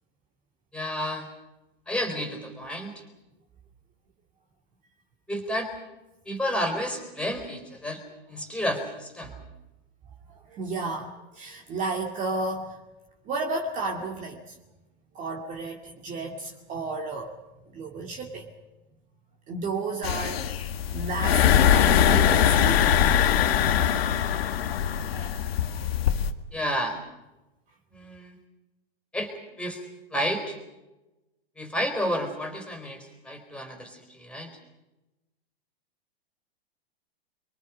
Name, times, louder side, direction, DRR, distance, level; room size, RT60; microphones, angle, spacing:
voice 1, 0.7-1.3 1.9-2.9 5.3-5.7 6.3-8.0 8.3-9.3 26.5-27.0 27.9-28.4 29.1-29.3 29.6-29.8 30.1-30.6 31.6-34.5, equal, 5° left, 5 dB, 4.6 m, -30 dB
voice 2, 10.3-12.8 13.3-14.6 15.1-17.3 17.7-18.5 19.5-22.9 23.6-24.0 24.6-25.4 25.7-25.9, right 3 dB, 25° right, 0 dB, 2.4 m, -33 dB
sound 1, 20.0-26.3, left 9 dB, 65° left, 1.8 m, -22 dB
29.5 x 23.5 x 5.2 m, 1.0 s
hypercardioid pair, 140°, 32 cm